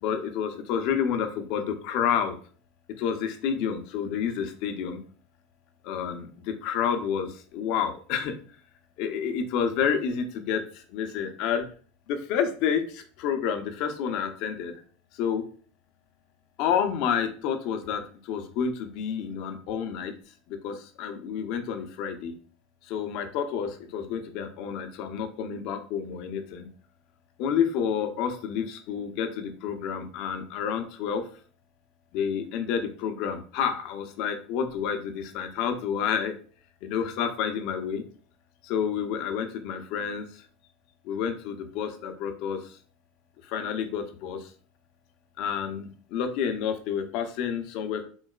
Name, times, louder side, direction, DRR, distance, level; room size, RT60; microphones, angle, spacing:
voice 1, 0.0-2.4 3.0-5.0 5.8-8.4 9.0-11.6 12.1-14.7 15.1-15.4 16.6-20.1 20.5-22.3 22.8-26.7 27.4-31.2 32.1-36.3 36.8-38.0 38.6-40.4 41.0-42.8 43.4-44.5 45.4-48.0, left 7 dB, 60° left, 6 dB, 0.5 m, -29 dB
3.8 x 2.1 x 2.3 m, 0.42 s
supercardioid pair, 105°, 0 cm